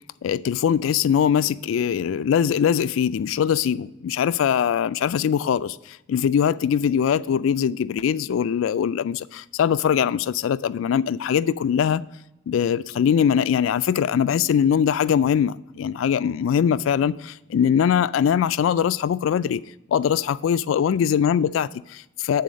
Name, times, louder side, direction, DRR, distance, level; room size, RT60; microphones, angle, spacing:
voice 1, 0.2-12.0 12.5-19.6 19.9-22.4, left 8 dB, 85° left, 0.3 m, -22 dB
8.4 x 4.0 x 6.3 m
head